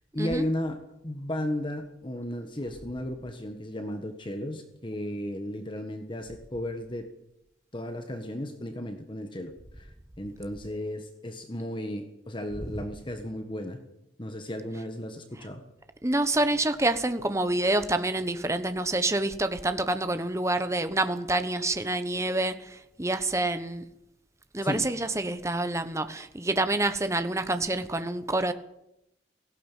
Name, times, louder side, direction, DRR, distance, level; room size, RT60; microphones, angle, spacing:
voice 1, 0.0-7.1 7.7-13.8 14.2-15.6 24.6-24.9, left 1 dB, 25° left, 1.5 m, -34 dB
voice 2, 16.0-23.8 24.5-28.5, right 2 dB, 15° right, 1.1 m, -27 dB
17.5 x 16.0 x 9.2 m
head